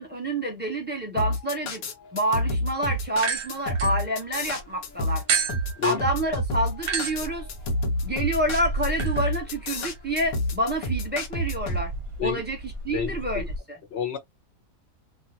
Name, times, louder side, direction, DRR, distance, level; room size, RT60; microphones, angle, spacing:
voice 1, 0.0-1.8 2.1-5.2 5.8-7.4 8.0-11.9 12.2-13.8, right 1 dB, 10° right, 1.1 m, -28 dB
sound 1, 1.2-11.8, equal, 90° left, 1.2 m, -28 dB
sound 2, 3.1-4.6 5.3-13.6, right 4 dB, 60° right, 0.8 m, -33 dB
voice 2, 12.9-13.4 13.9-14.2, left 10 dB, 55° left, 0.9 m, -29 dB
2.8 x 2.4 x 2.6 m
omnidirectional pair, 1.5 m